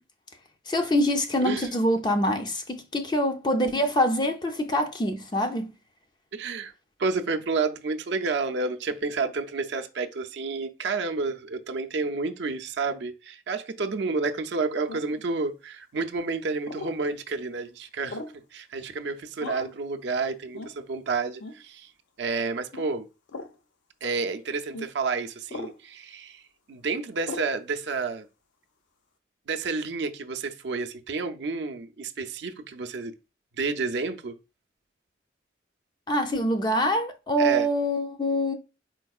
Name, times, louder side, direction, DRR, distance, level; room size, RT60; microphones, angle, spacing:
voice 1, 0.7-5.7 36.1-38.5, equal, 20° left, 0.4 m, -25 dB
voice 2, 6.3-6.7 7.0-18.2 18.5-21.9 22.2-23.1 24.0-26.4 26.7-28.3 29.5-33.1 33.6-34.3 37.4-37.7, right 4 dB, 65° right, 0.5 m, -30 dB
sound 1, 14.9-15.2 16.6-17.0 18.1-18.4 19.4-19.8 20.5-20.8 21.4-21.6 22.7-22.9 23.3-23.5 24.7-24.9 25.5-25.8 27.2-27.5, left 2 dB, 75° left, 0.5 m, -38 dB
4.5 x 4.2 x 2.3 m
head